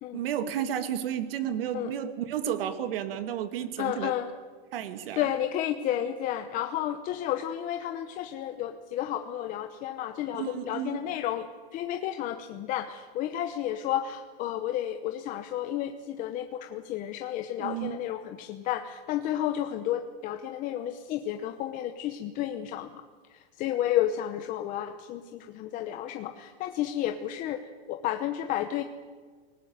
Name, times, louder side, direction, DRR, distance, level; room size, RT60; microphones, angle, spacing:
voice 1, 0.1-4.1 4.7-5.3 10.3-11.0 17.6-18.0, right 10 dB, 65° right, 10 dB, 2.2 m, -32 dB
voice 2, 3.8-4.3 5.1-11.5 11.7-23.0 23.3-27.6 27.9-28.8, left 11 dB, 25° left, 7 dB, 0.9 m, -31 dB
23.0 x 19.0 x 9.4 m, 1.5 s
supercardioid pair, 160°, 31 cm